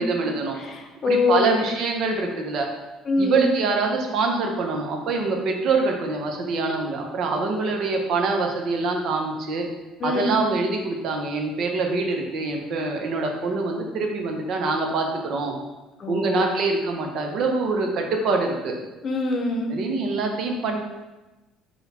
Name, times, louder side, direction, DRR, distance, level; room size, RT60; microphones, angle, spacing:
voice 1, 0.0-0.6 1.1-2.7 3.2-9.7 10.0-15.5 16.1-18.8 19.7-20.8, right 3 dB, 60° right, 2 dB, 0.7 m, -25 dB
voice 2, 0.6-1.7 3.0-3.5 10.0-10.4 16.0-16.5 19.0-19.7, left 3 dB, 45° left, 2 dB, 0.7 m, -24 dB
3.9 x 2.3 x 4.2 m, 1.1 s
supercardioid pair, 85°, 0 cm